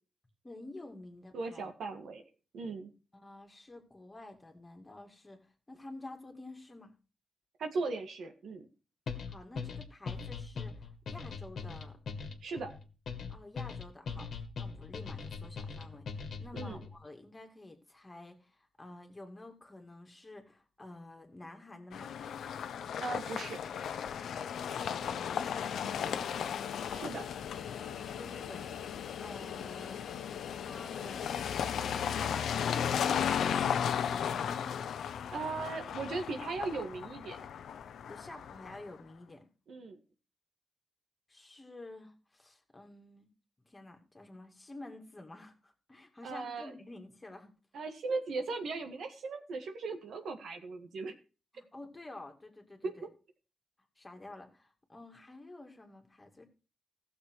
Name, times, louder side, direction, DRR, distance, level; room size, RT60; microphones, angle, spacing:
voice 1, 0.4-1.6 2.0-2.1 3.1-6.9 9.1-12.0 13.3-22.1 24.6-26.6 27.8-30.0 30.5-31.3 31.7-32.5 33.2-34.7 38.1-39.5 41.3-43.3 43.6-47.5 51.5-53.1 54.0-56.4, left 2 dB, 20° left, 4 dB, 2.3 m, -50 dB
voice 2, 1.3-2.2 2.5-2.9 7.6-8.7 12.4-12.7 16.5-16.8 23.0-23.6 26.9-27.3 35.3-37.4 39.7-40.0 46.2-46.7 47.7-51.1 52.8-52.9, right 3 dB, 75° right, 6 dB, 1.8 m, -38 dB
sound 1, 9.1-17.0, left 5 dB, 60° left, 1.7 m, -41 dB
sound 2, 21.9-38.9, left 8 dB, 80° left, 0.8 m, -35 dB
15.5 x 6.9 x 4.7 m, 0.34 s
cardioid pair, 110°, 0 cm